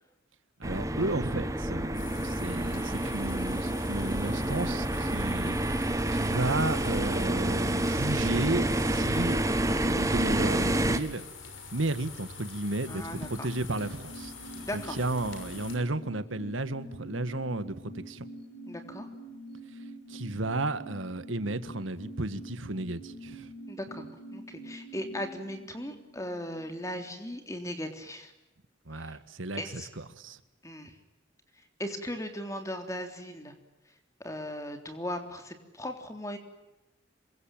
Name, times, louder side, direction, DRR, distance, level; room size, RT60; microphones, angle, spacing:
sound 1, 0.6-11.0, right 1 dB, 15° right, 1.5 m, -28 dB
voice 1, 0.6-9.4 9.8-11.3 11.7-18.2 20.1-23.5 28.9-29.8 30.1-30.4, right 2 dB, 90° right, 12 dB, 1.7 m, -33 dB
sound 2, 1.9-15.8, left 4 dB, 85° left, 5.9 m, -45 dB
sound 3, 12.4-27.4 27.7-27.8, right 1 dB, 65° left, 4.4 m, -46 dB
voice 2, 12.8-13.5 14.6-15.0 18.7-19.1 23.7-28.3 28.9-29.2 29.6-29.9 30.6-30.9 31.5-33.5 34.2-36.4, left 1 dB, 15° left, 6 dB, 3.5 m, -38 dB
27.0 x 23.5 x 9.1 m, 1.0 s
head